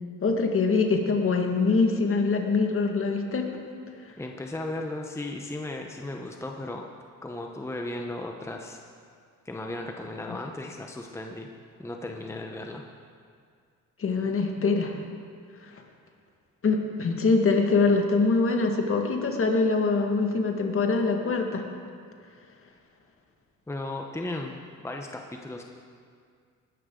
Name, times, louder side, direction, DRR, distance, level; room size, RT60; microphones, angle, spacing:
voice 1, 0.2-3.5 10.3-10.4 14.0-15.0 15.6-15.7 16.6-21.7, left 4 dB, 45° left, 3 dB, 1.9 m, -24 dB
voice 2, 4.2-6.9 7.2-8.8 9.4-11.5 11.8-12.8 23.7-25.6, left 2 dB, 10° left, 2 dB, 1.0 m, -36 dB
19.5 x 12.0 x 3.9 m, 2.2 s
cardioid pair, 90°, 30 cm